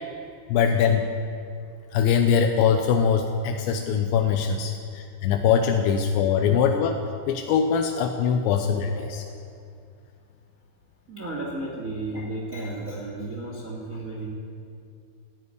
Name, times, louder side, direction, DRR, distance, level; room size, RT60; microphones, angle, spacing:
voice 1, 0.5-1.0 1.9-9.2, left 7 dB, 85° left, 5 dB, 2.7 m, -22 dB
voice 2, 11.1-14.3, right 2 dB, 75° right, -2 dB, 0.7 m, -34 dB
15.0 x 9.6 x 9.8 m, 2.3 s
omnidirectional pair, 5.7 m